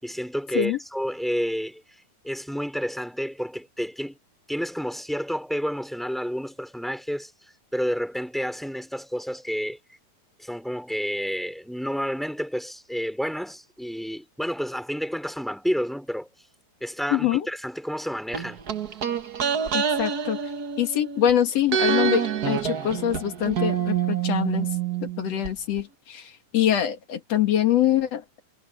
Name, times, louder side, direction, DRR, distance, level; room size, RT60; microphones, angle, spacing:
voice 1, 0.0-1.8 2.2-4.2 4.5-10.0 10.4-16.3 16.8-18.6, equal, ahead, 4.9 m, -30 dB
voice 2, 17.1-17.5 19.7-20.4 20.8-24.7 25.0-28.2, left 10 dB, 60° left, 2.8 m, -24 dB
sound 1, 18.3-21.3 21.7-25.5 25.8-25.9, right 8 dB, 45° right, 1.3 m, -27 dB
omnidirectional pair, 3.5 m